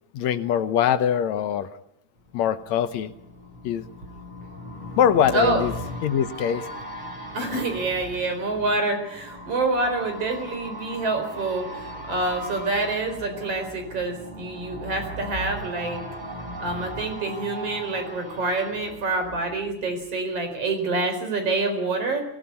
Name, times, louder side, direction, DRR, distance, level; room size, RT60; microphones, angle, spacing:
voice 1, 0.1-1.7 2.3-3.1 3.6-3.9 5.0-5.7 6.0-6.7, left 9 dB, 75° left, 12 dB, 2.2 m, -22 dB
sound 1, 2.3-20.1 20.4-20.5, equal, 15° right, 5.9 m, -38 dB
voice 2, 7.3-16.0 16.6-22.2, right 2 dB, 55° right, 6 dB, 5.2 m, -27 dB
22.0 x 17.5 x 9.6 m, 0.79 s
omnidirectional pair, 3.3 m